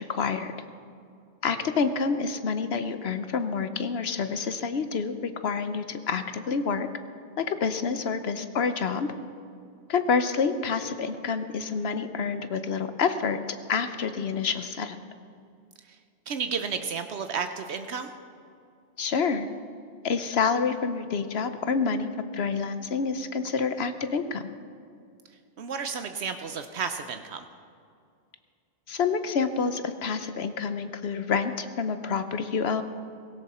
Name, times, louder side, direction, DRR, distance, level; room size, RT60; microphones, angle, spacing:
voice 1, 0.1-0.5 1.4-5.1 5.4-6.9 7.4-9.1 9.9-13.4 13.7-15.0 19.0-19.5 20.0-24.5 28.9-32.8, left 5 dB, 70° left, 10 dB, 1.0 m, -28 dB
voice 2, 16.3-18.1 25.6-27.5, right 6 dB, 75° right, 8 dB, 1.0 m, -32 dB
17.5 x 16.5 x 4.3 m, 2.3 s
omnidirectional pair, 1.1 m